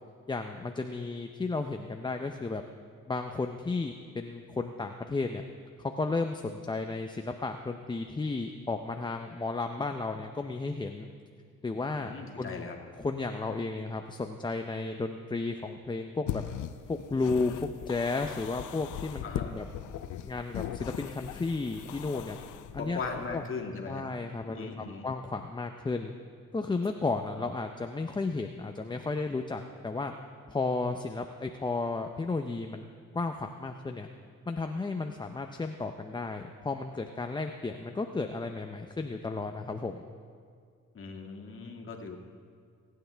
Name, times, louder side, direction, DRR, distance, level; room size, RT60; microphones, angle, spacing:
voice 1, 0.3-2.6 3.1-5.4 6.0-11.1 11.6-12.7 13.0-16.4 16.9-19.7 20.2-22.4 22.7-23.0 23.3-23.4 23.9-26.1 26.5-30.1 30.5-32.8 33.1-34.1 34.5-40.1, left 3 dB, 15° left, 5 dB, 0.5 m, -33 dB
voice 2, 12.0-12.8 19.2-19.5 22.8-24.1 24.5-25.0 27.4-27.5 40.9-42.2, left 4 dB, 45° left, 2 dB, 2.0 m, -38 dB
sound 1, 16.3-23.4, left 11 dB, 80° left, 0.6 m, -39 dB
24.0 x 9.5 x 3.4 m, 2.2 s
cardioid pair, 90°, 30 cm